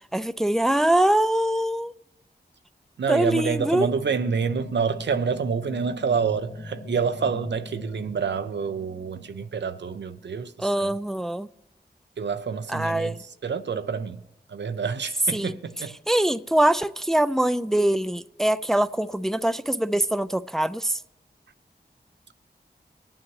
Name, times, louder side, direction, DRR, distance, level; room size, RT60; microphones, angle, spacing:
voice 1, 0.1-1.9 3.1-3.9 10.6-11.5 12.7-13.2 15.3-15.6 16.1-21.0, right 1 dB, ahead, 0.3 m, -23 dB
voice 2, 3.0-10.9 12.2-13.1 13.4-14.2 14.5-16.0, right 6 dB, 80° right, 0.5 m, -28 dB
sound 1, 3.5-10.3, left 1 dB, 80° left, 1.2 m, -41 dB
20.0 x 8.6 x 3.1 m
wide cardioid pair, 50°, 18 cm